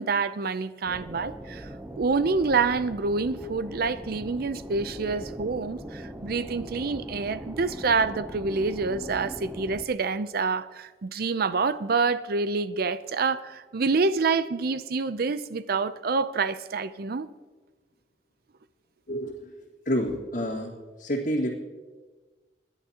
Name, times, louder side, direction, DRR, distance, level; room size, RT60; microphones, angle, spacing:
voice 1, 0.0-1.7 2.0-17.3, right 4 dB, 55° right, 0.5 m, -27 dB
sound 1, 0.9-9.9, right 1 dB, 10° right, 0.6 m, -40 dB
voice 2, 19.1-19.6 19.8-21.5, equal, 55° left, 1.9 m, -29 dB
28.0 x 11.0 x 2.9 m
head